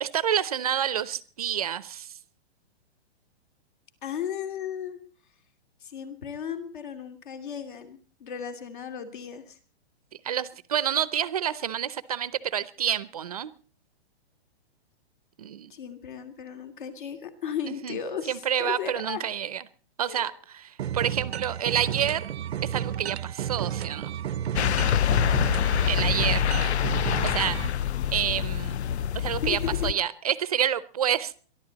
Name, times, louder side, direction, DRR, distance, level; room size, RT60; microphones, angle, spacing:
voice 1, 0.0-2.2 10.2-13.5 15.4-15.7 17.7-18.0 18.3-19.6 20.0-22.3 22.6-24.1 25.8-26.4 27.2-27.6 28.1-28.8 29.1-31.4, right 9 dB, 35° right, 18 dB, 0.7 m, -28 dB
voice 2, 4.0-5.0 5.8-9.6 15.7-19.2 20.1-20.3 29.4-29.9, left 8 dB, 50° left, 9 dB, 2.6 m, -35 dB
sound 1, 20.8-27.7, right 10 dB, 75° right, 0.7 m, -32 dB
sound 2, 24.6-29.9, left 9 dB, 80° left, 0.7 m, -25 dB
22.5 x 11.5 x 4.1 m, 0.41 s
hypercardioid pair, 180°, 32 cm